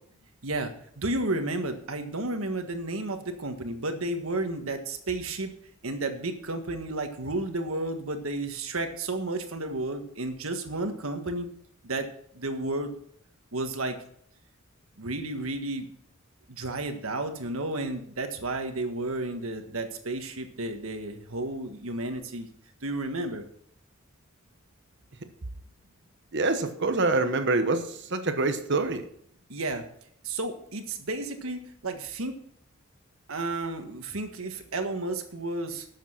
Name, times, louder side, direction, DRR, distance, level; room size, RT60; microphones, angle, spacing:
voice 1, 0.4-5.5 5.8-11.5 11.8-12.1 12.3-12.9 13.5-14.0 15.0-15.9 16.5-22.5 22.8-23.4 29.5-29.8 30.2-32.4 33.3-35.9, right 2 dB, 85° right, 6 dB, 1.6 m, -32 dB
voice 2, 26.3-29.0, right 3 dB, 55° right, 8 dB, 1.1 m, -26 dB
12.0 x 7.4 x 5.8 m, 0.67 s
head